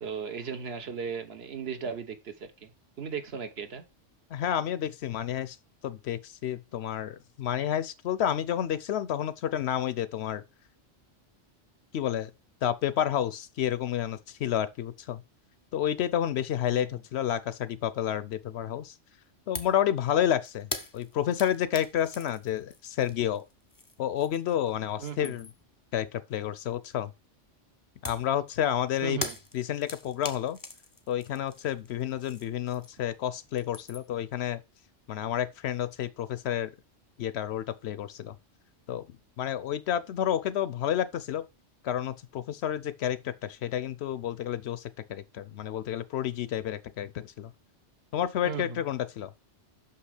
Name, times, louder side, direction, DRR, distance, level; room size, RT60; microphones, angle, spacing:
voice 1, 0.0-2.7 3.0-3.8 16.7-16.9 25.0-25.3 29.0-29.3 48.4-48.8, right 6 dB, 60° right, 1.2 m, -36 dB
voice 2, 4.3-5.6 5.8-10.4 11.9-12.3 12.6-15.2 15.7-18.9 19.5-20.7 20.9-23.4 24.0-25.5 25.9-27.1 28.0-29.2 29.5-30.6 31.1-34.6 35.1-36.7 37.2-38.4 38.9-39.1 39.4-41.4 41.8-47.5 48.1-49.3, left 10 dB, 70° left, 0.8 m, -30 dB
sound 1, 19.5-19.8 20.1-24.6 24.9-25.7 28.0-33.1 33.4-34.2, left 3 dB, 20° left, 0.6 m, -42 dB
6.0 x 5.7 x 4.9 m
omnidirectional pair, 1.2 m